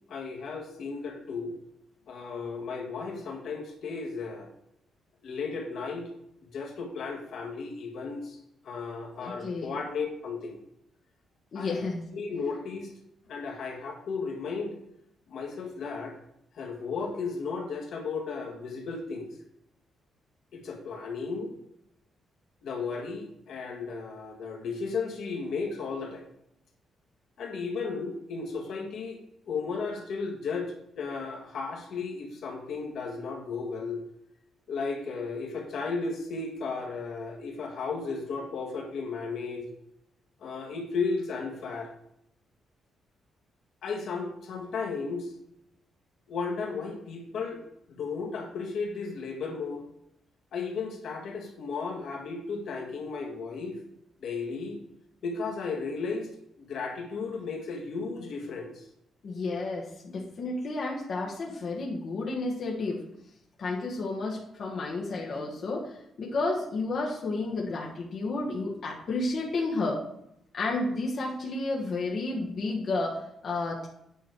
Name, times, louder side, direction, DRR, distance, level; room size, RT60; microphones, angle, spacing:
voice 1, 0.1-1.5 2.1-4.5 5.2-6.1 6.4-10.6 11.5-11.8 12.1-12.9 13.3-14.8 15.3-16.2 16.5-19.3 20.5-21.5 22.6-26.3 27.4-29.2 29.5-34.0 34.7-39.7 40.4-41.9 43.8-45.3 46.3-47.6 47.9-49.8 50.5-53.8 54.2-54.8 55.2-56.3 56.6-58.9, left 4 dB, 65° left, 1 dB, 1.8 m, -34 dB
voice 2, 9.2-9.8 11.5-12.1 59.2-63.0 63.6-70.0 70.5-73.9, left 2 dB, 45° left, -3 dB, 1.5 m, -31 dB
9.2 x 6.2 x 4.7 m, 0.78 s
cardioid pair, 150°, 0 cm